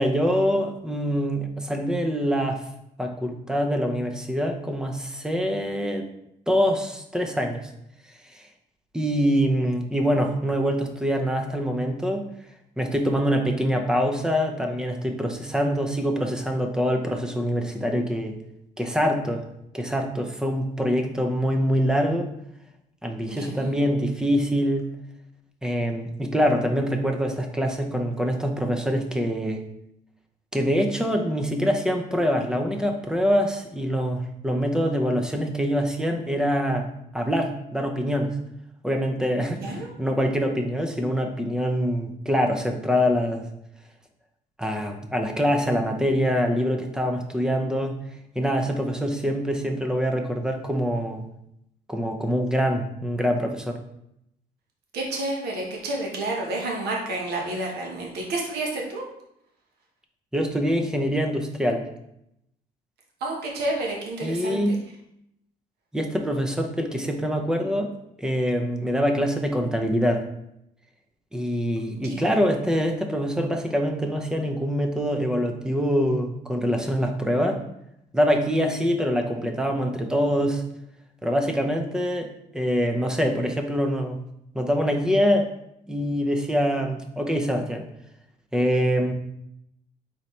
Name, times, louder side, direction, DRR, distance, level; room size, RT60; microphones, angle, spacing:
voice 1, 0.0-2.6 3.0-6.1 6.5-7.7 8.3-8.4 8.9-12.3 12.8-18.4 18.8-19.5 19.7-22.3 23.0-24.8 25.6-29.6 30.5-36.9 37.1-38.4 38.8-43.4 44.6-47.9 48.4-51.2 51.9-53.8 60.3-61.9 64.2-64.8 65.9-67.9 68.2-70.2 71.3-77.6 78.1-80.6 81.2-84.2 84.5-85.5 85.9-87.9 88.5-89.1, equal, 5° right, 4 dB, 0.6 m, -24 dB
voice 2, 23.3-23.8 39.6-39.9 54.9-59.0 63.2-64.8 72.1-72.3, right 2 dB, 70° right, -1 dB, 1.2 m, -30 dB
4.2 x 4.0 x 3.2 m, 0.79 s
cardioid pair, 110°, 17 cm